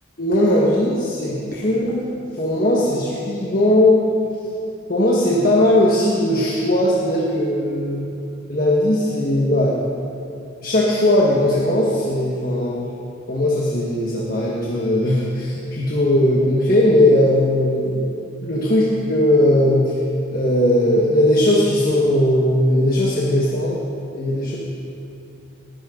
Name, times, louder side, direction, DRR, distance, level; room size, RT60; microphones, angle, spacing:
voice 1, 0.2-4.1 4.9-8.0 8.5-9.8 10.6-12.8 13.3-18.0 18.4-18.8 19.1-20.0 20.3-23.8 24.1-24.6, left 1 dB, 40° left, -4 dB, 1.6 m, -18 dB
20.0 x 14.5 x 3.9 m, 2.7 s
head